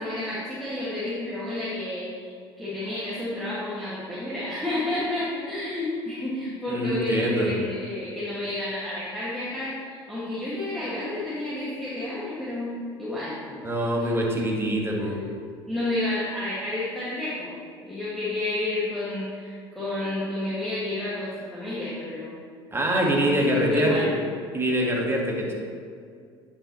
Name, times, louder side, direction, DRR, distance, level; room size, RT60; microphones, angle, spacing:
voice 1, 0.0-2.3 2.6-12.7 13.0-14.1 15.7-17.6 17.8-22.4 23.4-24.1, left 2 dB, ahead, -11 dB, 1.9 m, -30 dB
voice 2, 6.7-7.5 13.6-15.2 22.7-24.0 24.5-25.5, equal, 15° right, -1 dB, 1.7 m, -24 dB
9.7 x 5.7 x 3.1 m, 2.2 s
hypercardioid pair, 70°, 14 cm